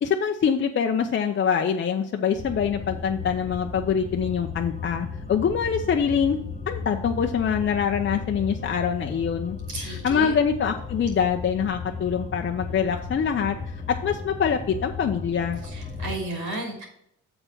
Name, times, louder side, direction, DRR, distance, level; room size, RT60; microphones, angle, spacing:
voice 1, 0.0-6.4 6.7-13.6 13.9-15.6, left 7 dB, 40° left, 4 dB, 0.6 m, -24 dB
sound 1, 2.4-16.2, left 4 dB, 20° left, 1.5 m, -35 dB
voice 2, 9.7-10.3 15.6-16.8, right 2 dB, 80° right, 1 dB, 3.2 m, -33 dB
6.6 x 4.5 x 5.9 m, 0.74 s
cardioid pair, 90°, 30 cm